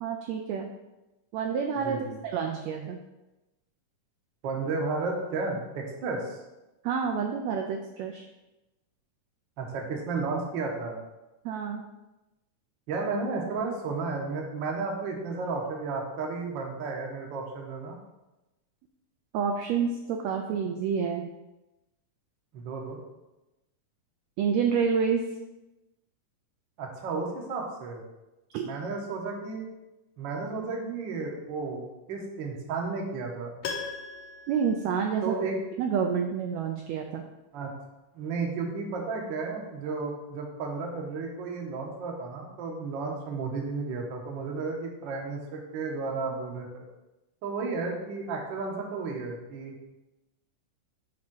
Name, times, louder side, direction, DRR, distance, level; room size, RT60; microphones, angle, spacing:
voice 1, 0.0-0.7 1.3-2.0 2.2-3.0 6.8-8.2 11.4-11.8 19.3-21.3 24.4-25.2 28.5-28.7 34.5-35.3 35.8-37.2, right 6 dB, 85° right, 3 dB, 1.5 m, -28 dB
voice 2, 4.4-6.4 9.6-10.9 12.9-18.0 22.5-23.0 26.8-28.0 28.6-29.6 30.2-31.8 32.1-33.5 35.2-35.6 37.5-37.7 38.1-46.8 47.4-49.7, right 4 dB, 65° right, 1 dB, 1.1 m, -33 dB
Piano, 33.6-35.7 36.0-36.1, left 5 dB, 70° left, 1.6 m, -39 dB
7.3 x 3.6 x 6.1 m, 1.0 s
omnidirectional pair, 3.7 m